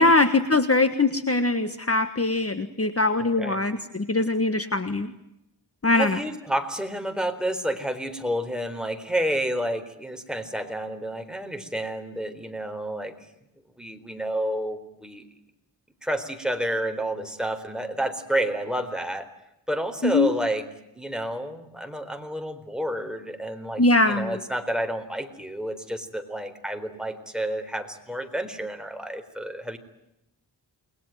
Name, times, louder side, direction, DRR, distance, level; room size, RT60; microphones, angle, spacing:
voice 1, 0.0-5.1 5.8-6.2 20.0-20.3 23.8-24.4, left 2 dB, 30° left, 10 dB, 1.6 m, -22 dB
voice 2, 6.0-13.1 13.8-15.2 16.0-19.3 19.7-20.6 20.9-29.8, right 1 dB, ahead, 6 dB, 4.1 m, -30 dB
29.5 x 21.0 x 9.2 m, 0.85 s
wide cardioid pair, 70°, 45 cm